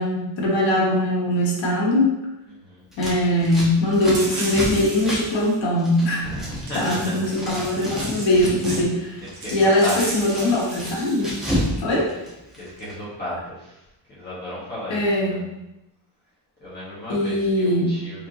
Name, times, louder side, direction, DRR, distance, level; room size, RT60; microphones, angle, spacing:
voice 1, 0.0-2.2 3.0-6.2 6.7-9.2 9.5-11.4 11.8-12.1 14.9-15.3 17.1-17.9, left 1 dB, 75° left, -4 dB, 1.5 m, -21 dB
Scissors, 2.9-7.0 7.3-8.9 9.2-11.7 12.0-12.9, equal, ahead, 1.2 m, -31 dB
sound 1, 4.1-5.6 6.7-8.4 8.6-8.8 9.3-11.7, right 2 dB, 40° right, 1.1 m, -35 dB
voice 2, 6.2-7.3 9.4-10.2 11.6-12.2 12.5-13.8 14.1-15.4 16.6-18.3, equal, 20° left, -10 dB, 1.7 m, -34 dB
4.7 x 3.6 x 3.0 m, 0.91 s
wide cardioid pair, 165°, 46 cm